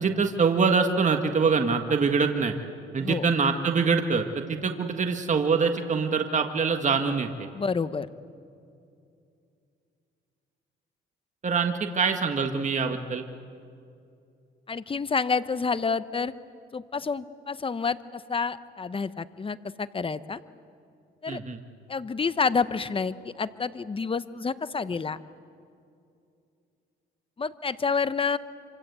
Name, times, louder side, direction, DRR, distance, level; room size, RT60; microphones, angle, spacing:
voice 1, 0.0-2.5 2.9-7.5 11.4-13.2 21.3-21.6, right 5 dB, 40° right, 5 dB, 1.7 m, -24 dB
voice 2, 7.5-8.1 14.7-16.3 16.7-20.4 21.2-21.4 21.9-25.2 27.4-28.4, left 5 dB, 25° left, 14 dB, 0.9 m, -29 dB
26.0 x 25.5 x 8.3 m, 2.5 s
cardioid pair, 90°, 20 cm